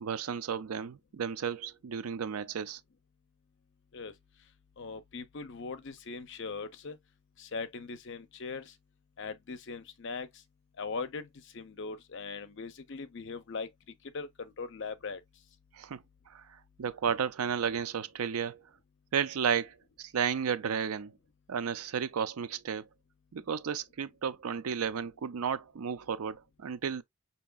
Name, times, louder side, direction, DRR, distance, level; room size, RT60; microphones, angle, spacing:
voice 1, 0.0-2.8 15.7-16.0 16.3-18.6 19.1-21.1 21.5-22.9 23.3-27.0, right 7 dB, 75° right, 0.4 m, -33 dB
voice 2, 4.8-7.0 7.4-8.7 9.2-10.3 10.8-11.3 11.5-13.7 14.1-15.2, left 4 dB, 55° left, 0.6 m, -40 dB
5.4 x 2.8 x 2.3 m
head